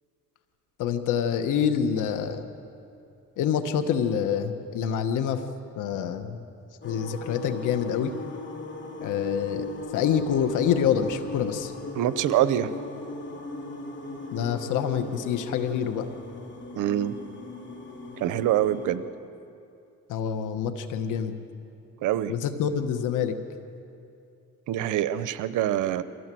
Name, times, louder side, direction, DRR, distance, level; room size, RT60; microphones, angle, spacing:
voice 1, 0.8-2.5 3.4-5.4 5.8-6.4 6.8-8.1 9.0-9.7 9.9-11.7 14.3-16.1 20.1-21.4 22.3-23.3, left 8 dB, 90° left, 9 dB, 1.5 m, -26 dB
sound 1, 6.8-19.0, left 2 dB, 40° left, 2.8 m, -38 dB
voice 2, 12.0-12.7 16.8-17.1 18.2-19.0 22.0-22.3 24.7-26.0, right 12 dB, 85° right, 14 dB, 0.8 m, -25 dB
24.0 x 16.0 x 7.8 m, 2.6 s
cardioid pair, 90°, 30 cm